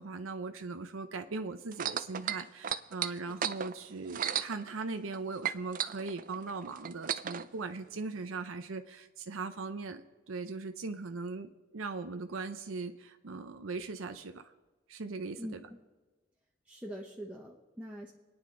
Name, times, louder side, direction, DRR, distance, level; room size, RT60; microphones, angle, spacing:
voice 1, 0.0-10.0 10.3-14.5 14.9-15.6, right 3 dB, 90° right, 8 dB, 0.7 m, -39 dB
sound 1, 1.7-5.2 5.4-7.5 8.2-8.3, right 9 dB, 45° right, 0.5 m, -34 dB
voice 2, 15.4-15.8 16.7-18.1, equal, 5° right, -3 dB, 0.9 m, -43 dB
27.5 x 9.7 x 3.8 m, 1.3 s
head